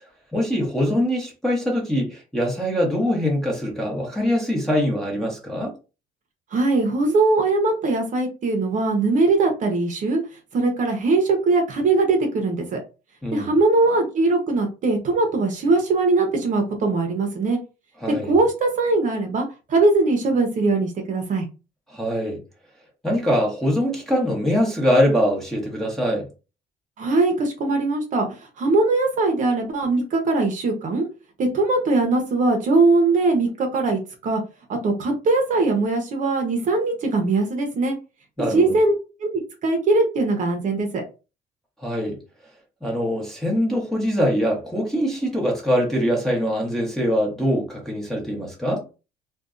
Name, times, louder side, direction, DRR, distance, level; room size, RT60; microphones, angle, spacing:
voice 1, 0.3-5.7 13.2-13.5 18.0-18.4 21.9-22.4 23.0-26.3 38.4-38.7 41.8-42.2 42.8-48.8, equal, ahead, 1.0 m, -23 dB
voice 2, 6.5-10.2 10.5-12.8 13.3-17.6 18.3-21.5 27.0-28.3 28.6-31.0 31.4-34.4 34.8-38.0 38.5-38.9 39.2-41.0, right 3 dB, 50° right, 0.7 m, -21 dB
2.6 x 2.2 x 2.4 m
cardioid pair, 110°, 17 cm